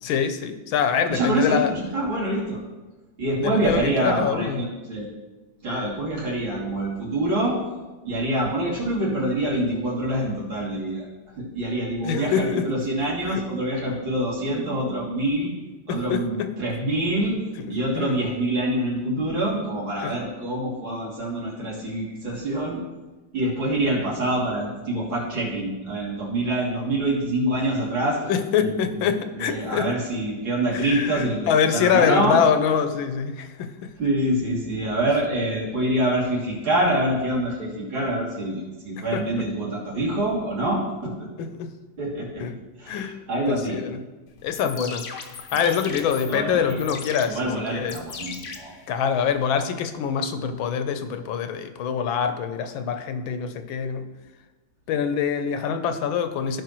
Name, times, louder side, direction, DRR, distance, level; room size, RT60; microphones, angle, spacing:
voice 1, 0.0-1.7 3.4-4.6 12.0-12.7 13.2-13.4 15.9-16.5 17.9-18.2 20.0-20.2 27.8-30.0 30.7-33.9 39.0-39.4 41.4-41.7 42.4-42.6 42.9-43.2 43.5-44.0 44.4-45.1 45.5-48.0 48.9-54.1 54.9-56.6, left 7 dB, 80° left, 8 dB, 1.5 m, -25 dB
voice 2, 1.1-2.6 3.2-5.1 5.6-7.6 8.0-11.1 11.4-15.5 15.9-17.4 17.7-22.8 23.3-28.2 28.6-29.1 29.4-32.4 34.0-41.3 42.0-42.4 42.8-43.8 45.5-45.6 45.9-46.0 46.3-46.8 47.3-48.8, right 1 dB, 75° right, -6 dB, 3.5 m, -26 dB
sound 1, 44.4-49.4, left 5 dB, 55° left, 0.8 m, -39 dB
15.5 x 5.4 x 3.1 m, 1.2 s
omnidirectional pair, 2.2 m